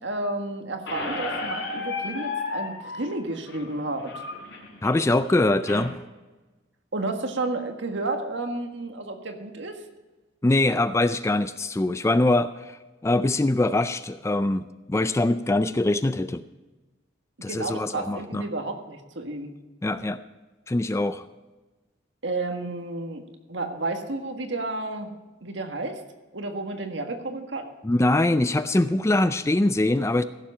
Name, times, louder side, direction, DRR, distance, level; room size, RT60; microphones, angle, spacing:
voice 1, 0.0-4.2 6.9-9.8 17.5-19.5 22.2-23.2 23.5-25.1 25.4-26.0 26.3-27.7, right 2 dB, 65° right, 4 dB, 1.6 m, -31 dB
Squeak, 0.9-5.9, left 3 dB, 70° left, 3.8 m, -34 dB
voice 2, 4.8-6.0 10.4-12.8 13.0-16.4 17.4-18.5 19.8-20.2 20.7-21.2 27.8-30.2, left 2 dB, 15° left, 12 dB, 0.3 m, -23 dB
15.5 x 7.3 x 5.4 m, 1.2 s
head